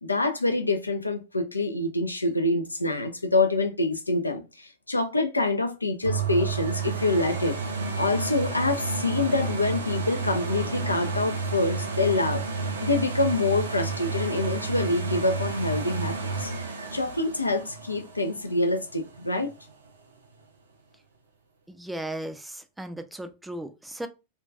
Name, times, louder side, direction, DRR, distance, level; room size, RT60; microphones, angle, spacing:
voice 1, 0.0-7.6 8.0-12.4 12.8-16.5 16.9-19.5, left 2 dB, 80° left, 0.3 m, -26 dB
sound 1, 6.0-19.7 20.2-20.3, right 4 dB, 70° right, 0.4 m, -31 dB
voice 2, 21.7-24.1, right 1 dB, 5° right, 0.3 m, -36 dB
2.2 x 2.2 x 2.5 m
figure-of-eight pair, 90°, 0 cm